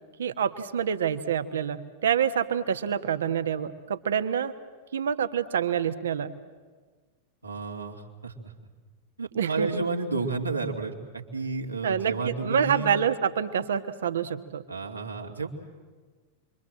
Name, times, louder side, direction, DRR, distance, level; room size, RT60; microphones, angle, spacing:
voice 1, 0.2-4.5 4.9-6.4 9.3-9.7 11.8-14.6, right 8 dB, 65° right, 10 dB, 1.3 m, -27 dB
voice 2, 7.4-8.3 9.2-12.9 14.7-15.5, right 3 dB, 80° right, 1 dB, 2.7 m, -31 dB
29.0 x 24.0 x 7.7 m, 1.4 s
figure-of-eight pair, 90°, 0 cm